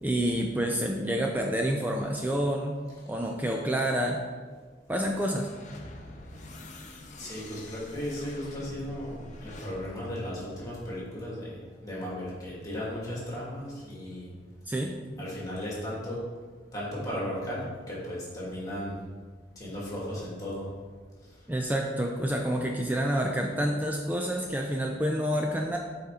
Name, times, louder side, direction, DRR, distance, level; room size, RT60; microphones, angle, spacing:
voice 1, 0.0-2.8 3.1-4.2 4.9-5.5 14.7-14.9 21.5-25.8, equal, 10° right, 1 dB, 0.4 m, -28 dB
sound 1, 5.1-11.3, left 2 dB, 40° left, 0.7 m, -46 dB
voice 2, 7.2-11.5 11.8-14.3 15.2-16.2 16.7-19.0 19.6-20.6, equal, 20° left, -6 dB, 2.0 m, -35 dB
7.4 x 4.3 x 3.7 m, 1.5 s
head